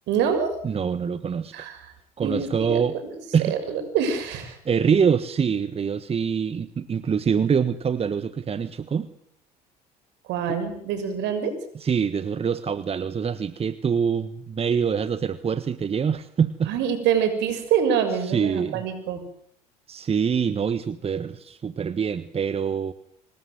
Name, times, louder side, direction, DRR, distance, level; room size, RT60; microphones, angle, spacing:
voice 1, 0.1-0.6 1.5-1.9 2.2-2.8 3.5-4.6 10.3-11.5 16.6-19.2, right 7 dB, 60° right, 9 dB, 6.5 m, -25 dB
voice 2, 0.6-1.7 2.2-3.0 3.3-3.6 4.6-9.1 10.5-10.6 11.7-16.7 18.2-18.8 19.9-22.9, right 6 dB, 30° right, 13 dB, 1.4 m, -25 dB
26.5 x 19.5 x 8.0 m, 0.68 s
hypercardioid pair, 70°, 20 cm